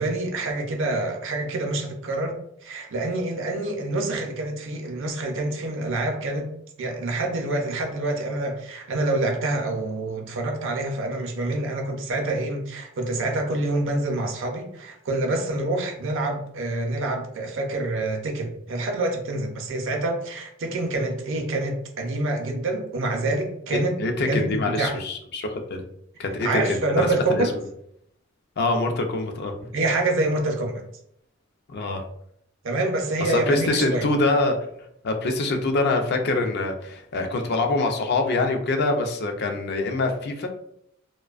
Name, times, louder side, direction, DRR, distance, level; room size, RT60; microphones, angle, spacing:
voice 1, 0.0-24.0 24.3-25.0 26.4-27.5 29.7-30.8 32.6-34.1, right 2 dB, 65° right, 3 dB, 0.5 m, -27 dB
voice 2, 23.7-25.8 26.2-27.4 28.6-29.5 31.7-32.0 33.2-34.6 35.0-40.5, left 2 dB, 55° left, 5 dB, 0.4 m, -24 dB
2.5 x 2.2 x 2.3 m, 0.72 s
head